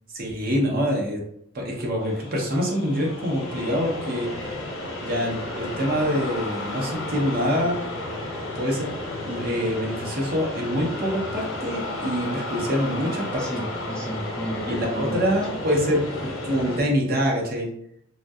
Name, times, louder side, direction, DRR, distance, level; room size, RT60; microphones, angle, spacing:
voice 1, 0.1-1.2 1.5-4.3 5.0-7.8 8.5-8.9 9.2-13.4 14.6-16.0 16.4-17.7, equal, 45° right, -1 dB, 0.6 m, -25 dB
sound 1, 2.0-16.8, left 1 dB, 80° left, 0.7 m, -33 dB
voice 2, 13.4-15.6 16.2-16.3, equal, 5° left, -4 dB, 0.3 m, -33 dB
2.6 x 2.1 x 2.3 m, 0.73 s
head